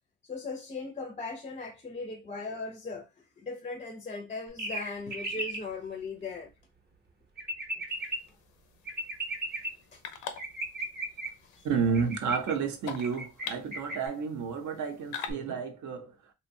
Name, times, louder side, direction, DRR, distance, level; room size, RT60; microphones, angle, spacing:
voice 1, 0.2-6.5 7.7-7.8 8.3-8.4 9.9-10.4 11.5-11.7, left 3 dB, 25° left, 0.4 m, -39 dB
sound 1, 4.6-5.6 7.4-8.2 8.9-9.7 10.4-11.3 11.9-12.5 13.0-13.5 13.7-14.1, right 1 dB, 30° right, 0.7 m, -35 dB
sound 2, 7.9-15.3, left 7 dB, 85° left, 0.5 m, -45 dB
voice 2, 11.6-16.3, right 5 dB, 70° right, 0.6 m, -31 dB
2.7 x 2.1 x 2.6 m
cardioid pair, 90°, 30 cm